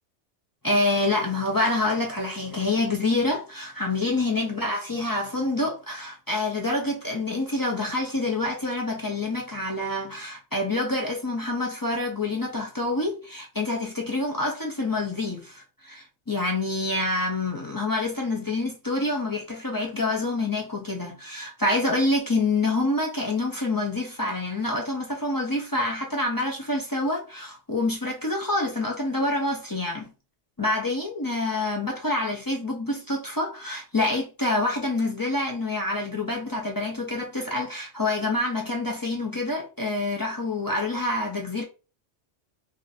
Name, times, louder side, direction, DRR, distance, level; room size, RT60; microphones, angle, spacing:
voice 1, 0.6-30.1 30.6-41.6, left 2 dB, 30° left, 0.4 m, -27 dB
2.5 x 2.5 x 4.0 m
omnidirectional pair, 1.2 m